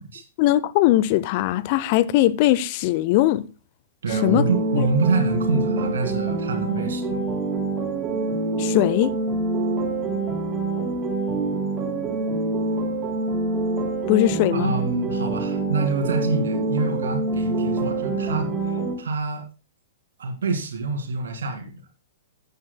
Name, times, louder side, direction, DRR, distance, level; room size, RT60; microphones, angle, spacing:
voice 1, 0.4-3.4 4.2-4.4 4.8-4.9 8.6-9.1 14.1-14.8, left 15 dB, 40° left, 0.6 m, -20 dB
voice 2, 4.0-7.3 14.5-19.5 20.2-21.8, right 3 dB, 60° right, 2.4 m, -26 dB
sound 1, 4.1-18.9, right 2 dB, 25° right, 3.6 m, -26 dB
14.0 x 9.4 x 2.3 m
figure-of-eight pair, 105°, 0 cm